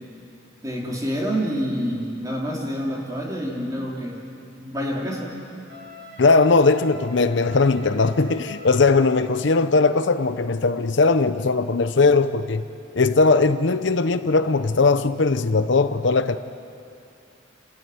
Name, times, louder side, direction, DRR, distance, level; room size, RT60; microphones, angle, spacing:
voice 1, 0.6-4.2 4.6-5.3, equal, 15° right, -2 dB, 3.4 m, -27 dB
Wind instrument woodwind instrument, 5.7-9.6, left 5 dB, 50° right, 6.7 m, -42 dB
voice 2, 6.2-12.6 12.9-16.4, left 3 dB, 65° left, 11 dB, 0.7 m, -19 dB
29.0 x 14.0 x 9.4 m, 2.6 s
head